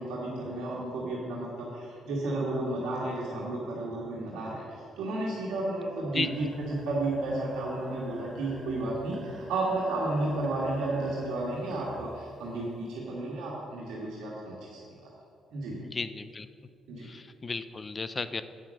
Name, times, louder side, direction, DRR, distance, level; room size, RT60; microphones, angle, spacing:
voice 1, 0.0-14.8 15.5-15.8 16.9-17.1, right 2 dB, 90° right, -5 dB, 1.6 m, -32 dB
sound 1, 6.2-12.5 12.9-13.0, right 1 dB, 10° right, 1.9 m, -47 dB
voice 2, 15.8-16.5 17.1-18.4, left 4 dB, 30° left, 11 dB, 0.5 m, -34 dB
8.7 x 5.8 x 6.3 m, 2.5 s
cardioid pair, 90°, 0 cm